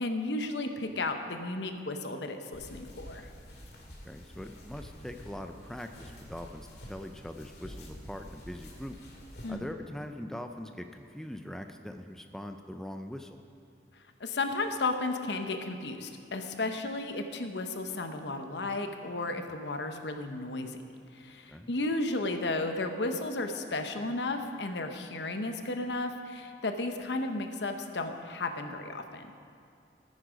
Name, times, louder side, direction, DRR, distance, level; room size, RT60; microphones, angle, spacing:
voice 1, 0.0-3.3 9.4-9.7 14.2-20.8 21.1-29.3, left 2 dB, 80° left, 6 dB, 0.9 m, -34 dB
sound 1, 2.5-9.5, equal, 65° left, 2.1 m, -48 dB
voice 2, 3.9-9.0 9.5-13.4 19.3-19.5 21.5-21.7, left 1 dB, 5° left, 5 dB, 0.4 m, -42 dB
14.0 x 9.5 x 5.1 m, 2.5 s
head